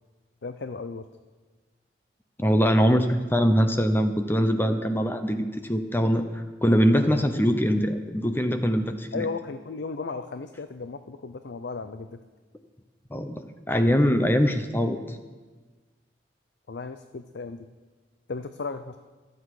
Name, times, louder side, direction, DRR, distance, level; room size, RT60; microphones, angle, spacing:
voice 1, 0.4-1.1 9.1-12.2 16.7-17.7 18.3-19.0, left 4 dB, 70° left, 9 dB, 0.5 m, -35 dB
voice 2, 2.4-9.3 13.1-15.2, equal, 10° left, 7 dB, 0.7 m, -23 dB
24.0 x 8.2 x 4.8 m, 1.3 s
head